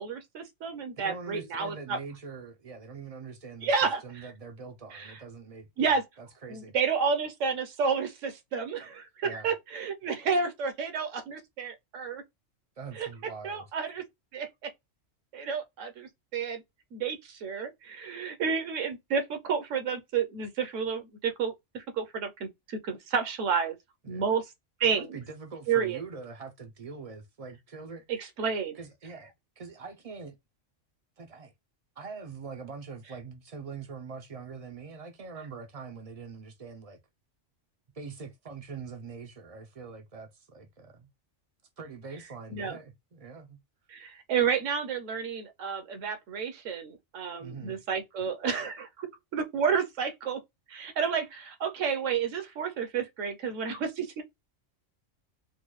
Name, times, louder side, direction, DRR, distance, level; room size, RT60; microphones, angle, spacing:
voice 1, 0.0-2.0 3.6-4.0 4.9-5.2 5.8-6.0 6.5-12.2 12.9-13.1 13.4-14.1 14.3-14.7 15.3-16.6 16.9-23.8 24.1-24.5 24.8-25.1 25.7-26.0 28.1-28.8 42.5-42.8 43.9-49.1 49.3-50.4 50.7-54.2, right 6 dB, 75° right, 1.1 m, -30 dB
voice 2, 1.0-3.7 4.0-6.7 9.2-9.5 12.8-13.7 24.0-24.3 24.9-28.0 28.8-29.3 29.6-30.4 31.2-31.5 32.0-37.0 37.9-41.1 41.8-43.6 47.4-47.8, right 5 dB, 55° right, 0.4 m, -43 dB
3.7 x 2.2 x 3.1 m
omnidirectional pair, 1.3 m